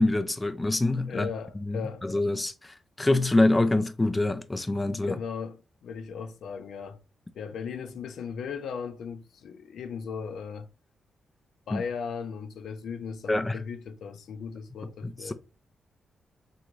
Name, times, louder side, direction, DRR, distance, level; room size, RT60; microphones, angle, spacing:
voice 1, 0.0-1.3 1.6-5.2 11.7-11.8 13.3-13.6 15.0-15.3, left 2 dB, 15° left, 0.3 m, -25 dB
voice 2, 0.9-2.1 4.9-7.0 7.3-10.7 11.7-15.3, left 6 dB, 75° left, 0.5 m, -37 dB
3.8 x 3.4 x 3.2 m
wide cardioid pair, 170°, 0 cm